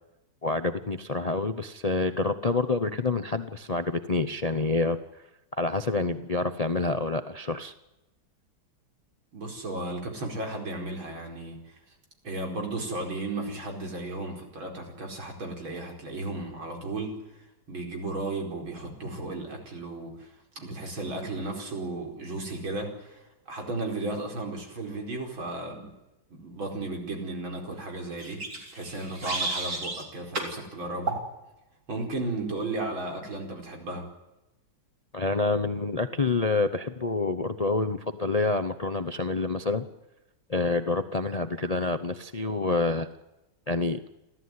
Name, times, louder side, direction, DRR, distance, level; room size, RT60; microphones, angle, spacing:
voice 1, 0.4-5.2 5.5-7.7 35.1-39.9 40.5-43.1 43.7-44.0, left 3 dB, 55° left, 10 dB, 0.4 m, -27 dB
voice 2, 9.3-11.8 12.2-17.2 17.7-25.9 26.3-28.5 28.7-31.2 31.9-34.1, right 2 dB, 75° right, 2 dB, 5.5 m, -34 dB
sound 1, 28.2-30.0 30.3-30.6 31.1-31.3, right 2 dB, 45° right, 4.3 m, -32 dB
29.5 x 13.5 x 9.6 m, 0.97 s
omnidirectional pair, 2.2 m